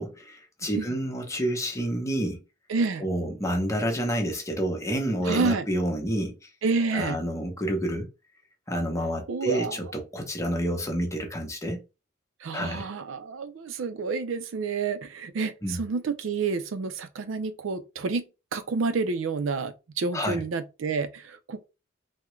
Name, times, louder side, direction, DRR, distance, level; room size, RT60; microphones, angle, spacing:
voice 1, 0.0-2.4 3.0-6.5 6.9-8.1 8.7-11.8 12.5-12.9 15.6-15.8 20.1-20.4, equal, 15° left, 0.8 m, -29 dB
voice 2, 2.7-3.0 5.3-5.6 6.6-7.2 9.3-9.8 12.4-18.2 18.5-21.8, right 4 dB, 75° right, 0.4 m, -29 dB
3.6 x 2.1 x 3.1 m
head